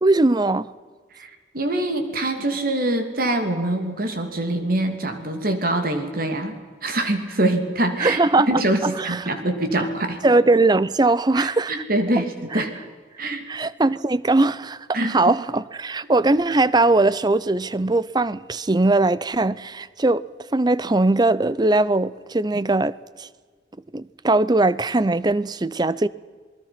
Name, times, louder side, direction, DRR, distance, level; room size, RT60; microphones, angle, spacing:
voice 1, 0.0-0.7 8.0-9.3 10.2-11.8 12.5-12.6 13.5-20.2 20.5-23.3 23.9-26.1, right 2 dB, 25° right, 0.6 m, -20 dB
voice 2, 1.1-8.2 8.5-10.2 11.4-12.7 13.2-13.4 14.9-15.1, right 1 dB, 50° right, 2.8 m, -24 dB
27.5 x 20.5 x 6.0 m
head